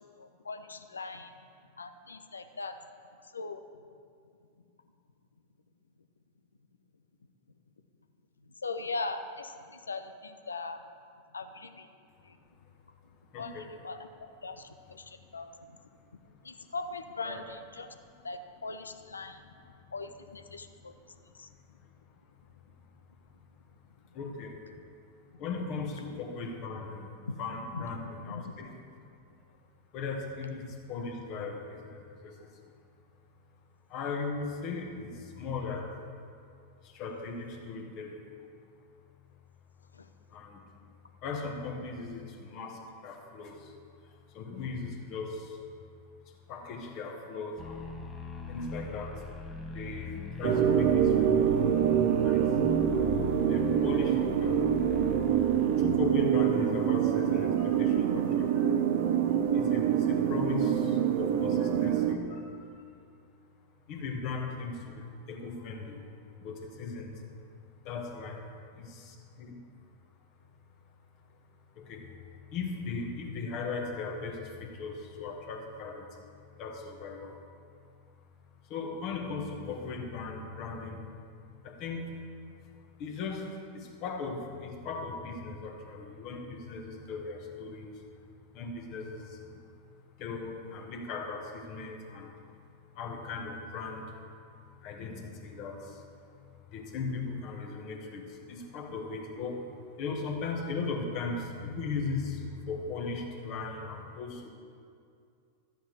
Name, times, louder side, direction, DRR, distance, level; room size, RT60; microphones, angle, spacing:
voice 1, 0.2-1.3 1.8-2.8 3.3-3.6 8.5-10.8 11.3-11.9 12.2-12.4 13.4-15.5 16.4-17.9 18.2-19.4 19.9-20.9 21.4-21.5 25.3-25.4 27.3-27.4 27.7-28.5 39.9-40.1, left 3 dB, 75° left, 9 dB, 0.7 m, -40 dB
voice 2, 13.3-13.8 17.2-17.4 24.1-24.6 25.4-27.1 27.4-28.7 29.9-32.5 33.9-36.1 36.8-38.3 40.3-40.6 41.2-43.7 44.3-45.6 46.5-47.8 48.5-49.3 49.7-52.5 53.4-54.6 55.8-58.7 59.5-62.7 63.9-66.0 66.4-67.1 67.8-68.4 68.7-69.6 71.7-76.1 76.6-77.4 78.7-81.1 81.6-82.1 83.0-88.0 88.5-89.6 90.2-92.4 92.9-94.2 94.8-96.0 96.7-99.7 100.0-104.5, left 4 dB, 40° left, 2 dB, 1.6 m, -38 dB
sound 1, 47.6-55.8, left 2 dB, 15° left, 1.3 m, -39 dB
sound 2, 50.4-62.2, right 9 dB, 50° right, 0.8 m, -26 dB
13.0 x 8.8 x 4.8 m, 2.3 s
figure-of-eight pair, 90°, 0 cm